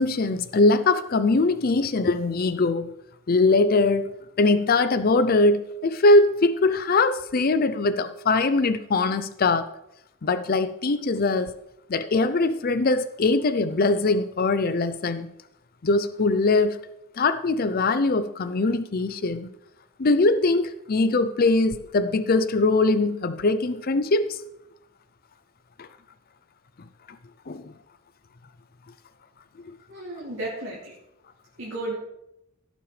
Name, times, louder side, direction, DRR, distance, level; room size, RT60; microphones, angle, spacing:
voice 1, 0.0-2.9 3.3-4.1 4.4-9.7 10.2-11.5 11.9-15.3 15.8-16.8 17.2-19.5 20.0-24.4 25.8-25.9 27.5-27.7, left 3 dB, 45° left, 11 dB, 0.5 m, -22 dB
voice 2, 29.9-30.9 31.6-31.9, right 2 dB, 75° right, -5 dB, 2.9 m, -33 dB
16.5 x 7.5 x 3.3 m, 0.83 s
head